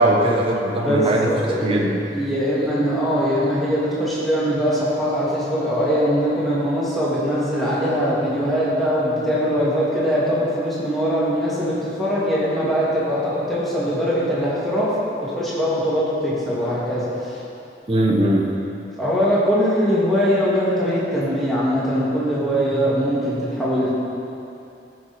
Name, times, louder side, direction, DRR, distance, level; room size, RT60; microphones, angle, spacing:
voice 1, 0.0-1.3 1.6-2.0 17.9-18.5, right 1 dB, 30° right, -2 dB, 1.0 m, -19 dB
voice 2, 0.8-14.9 15.2-17.4 19.0-23.9, equal, ahead, -9 dB, 2.3 m, -21 dB
14.5 x 6.1 x 4.3 m, 2.7 s
head